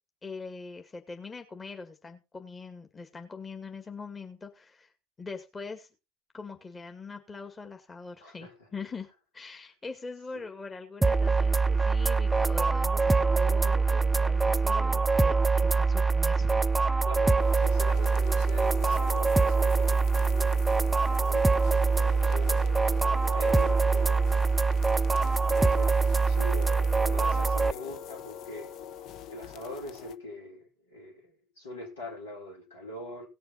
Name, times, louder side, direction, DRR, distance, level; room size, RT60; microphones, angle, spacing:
voice 1, 0.2-4.9 5.2-5.9 6.3-16.5, left 4 dB, 25° left, 2.1 m, -42 dB
voice 2, 8.2-8.5 10.3-10.4 17.0-22.7 23.3-24.2 25.1-28.7 29.3-33.3, left 1 dB, 85° left, 5.0 m, -43 dB
sound 1, 11.0-27.7, right 4 dB, 10° right, 0.6 m, -24 dB
sound 2, 17.4-30.2, left 10 dB, 55° left, 0.8 m, -44 dB
17.5 x 6.8 x 4.3 m
hypercardioid pair, 75°, 0 cm